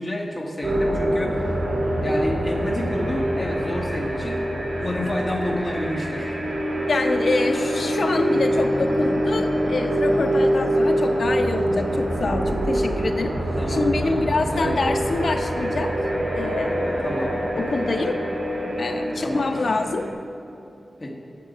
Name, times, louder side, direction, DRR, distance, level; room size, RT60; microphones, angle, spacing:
voice 1, 0.0-1.6 2.0-4.4 4.8-6.4 13.6-14.9 17.0-17.4 19.2-19.5 21.0-21.1, left 1 dB, 30° left, 0 dB, 1.5 m, -29 dB
sound 1, 0.6-20.1, right 1 dB, 65° right, 2.3 m, -25 dB
voice 2, 6.9-13.4 13.7-15.9 16.3-16.9 17.6-18.2 18.8-20.1, left 3 dB, 65° left, 5 dB, 0.7 m, -26 dB
10.5 x 7.4 x 5.0 m, 2.9 s
wide cardioid pair, 115°, 0 cm